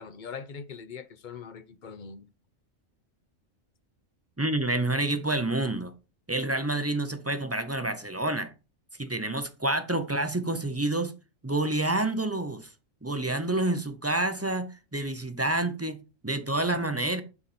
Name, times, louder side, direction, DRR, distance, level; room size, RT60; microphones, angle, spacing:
voice 1, 0.0-2.3, left 6 dB, 45° left, 0.7 m, -42 dB
voice 2, 4.4-5.9 6.3-8.5 9.0-11.1 11.4-12.7 13.0-17.2, right 2 dB, 15° right, 0.5 m, -28 dB
9.5 x 4.2 x 4.2 m
omnidirectional pair, 1.4 m